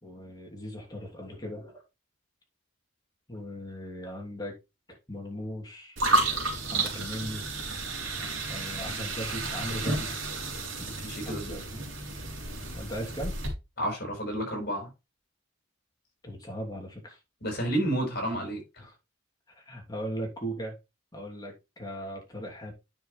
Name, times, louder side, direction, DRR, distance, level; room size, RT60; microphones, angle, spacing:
voice 1, 0.0-1.8 3.3-4.5 5.1-6.2 6.7-7.5 8.5-10.1 11.2-11.6 12.7-13.3 16.2-17.2 18.8-19.0 19.6-20.7 21.1-22.7, equal, 20° left, 2.9 m, -38 dB
sound 1, 6.0-13.5, right 2 dB, 65° right, 3.5 m, -31 dB
voice 2, 11.0-11.8 13.8-14.9 17.4-18.6, right 1 dB, 50° left, 5.0 m, -31 dB
9.5 x 6.2 x 3.3 m
head